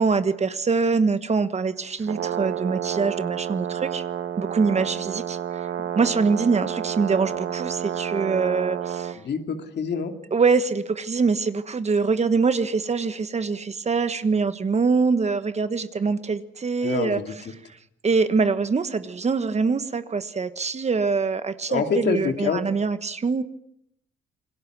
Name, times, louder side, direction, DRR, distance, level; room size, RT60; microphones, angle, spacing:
voice 1, 0.0-4.0 4.4-5.4 5.9-9.2 10.3-17.2 18.0-23.4, right 4 dB, 35° right, 11 dB, 1.3 m, -24 dB
Brass instrument, 2.0-9.2, right 10 dB, 70° right, 1.5 m, -30 dB
voice 2, 9.2-10.1 16.8-17.5 21.7-22.6, left 6 dB, 60° left, 6 dB, 2.5 m, -26 dB
27.5 x 20.0 x 6.3 m, 0.74 s
cardioid pair, 90°, 20 cm